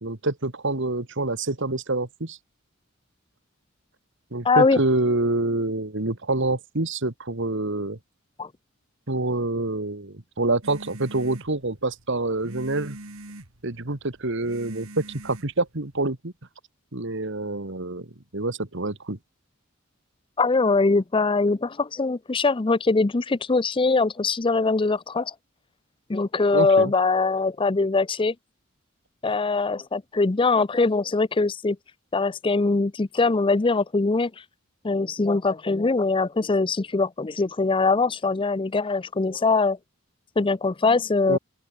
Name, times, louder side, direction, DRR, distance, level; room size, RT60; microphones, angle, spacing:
voice 1, 0.0-2.4 4.3-8.0 9.1-13.0 13.6-16.3 16.9-19.2 26.5-26.9 41.3-41.4, right 2 dB, 60° right, 2.1 m, -27 dB
voice 2, 4.4-4.8 8.4-8.5 20.4-25.3 26.1-28.3 29.2-31.8 32.1-34.3 34.8-39.8 40.4-41.4, left 3 dB, 25° left, 0.5 m, -22 dB
sound 1, 10.6-16.1, right 1 dB, 85° right, 3.6 m, -43 dB
open air
head